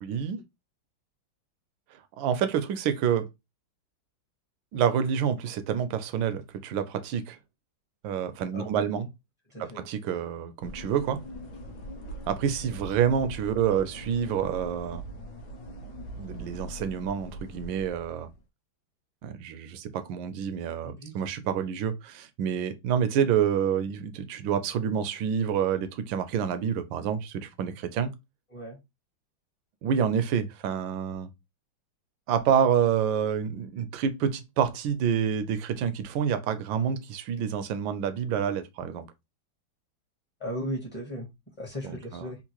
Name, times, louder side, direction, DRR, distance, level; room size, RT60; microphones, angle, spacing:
voice 1, 0.0-0.4 2.2-3.3 4.7-7.4 8.0-9.1 9.9-11.2 12.3-15.1 16.2-18.3 19.2-28.1 29.8-31.3 32.3-39.1 41.9-42.2, right 8 dB, 80° right, 1.3 m, -28 dB
voice 2, 8.5-9.0 9.5-9.8 20.8-21.2 28.5-28.8 40.4-41.3 41.6-42.4, equal, 25° left, 0.7 m, -36 dB
sound 1, 10.6-18.4, right 1 dB, 65° left, 1.2 m, -42 dB
3.7 x 2.5 x 2.9 m
omnidirectional pair, 2.2 m